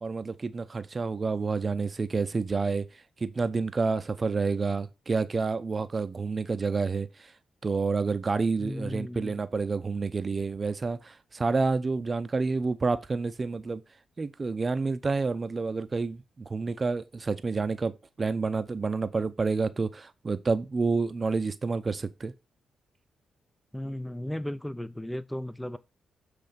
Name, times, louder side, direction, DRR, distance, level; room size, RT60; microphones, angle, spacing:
voice 1, 0.0-2.9 3.2-7.3 7.6-13.8 14.2-22.3, right 4 dB, 40° right, 0.7 m, -29 dB
voice 2, 8.6-9.4 23.7-25.8, left 1 dB, 5° left, 0.6 m, -35 dB
7.7 x 3.5 x 5.1 m
hypercardioid pair, 40°, 0 cm